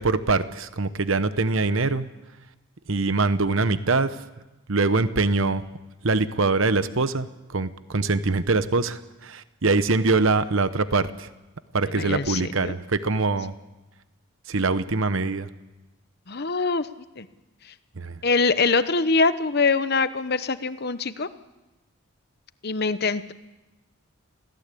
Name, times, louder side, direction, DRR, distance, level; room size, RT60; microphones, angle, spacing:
voice 1, 0.0-2.1 2.9-4.2 4.7-5.7 6.0-11.3 11.7-13.5 14.5-15.5 18.0-18.2, right 3 dB, 65° right, 12 dB, 1.0 m, -23 dB
voice 2, 11.9-12.7 14.5-14.6 16.3-16.9 17.2-17.3 18.2-21.3 22.6-23.3, left 4 dB, 45° left, 12 dB, 1.0 m, -23 dB
27.0 x 17.0 x 8.5 m, 1.1 s
head